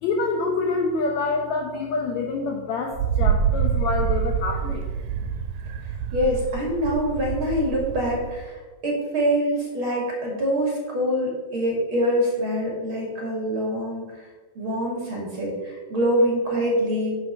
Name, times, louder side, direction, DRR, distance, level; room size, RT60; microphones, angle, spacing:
voice 1, 0.0-4.9, left 3 dB, 70° left, 2 dB, 1.8 m, -26 dB
Wind, 2.9-8.4, right 8 dB, 85° right, 2.3 m, -26 dB
voice 2, 5.8-14.2 14.5-17.2, equal, 40° right, -1 dB, 2.6 m, -25 dB
10.0 x 5.8 x 6.5 m, 1.3 s
omnidirectional pair, 4.0 m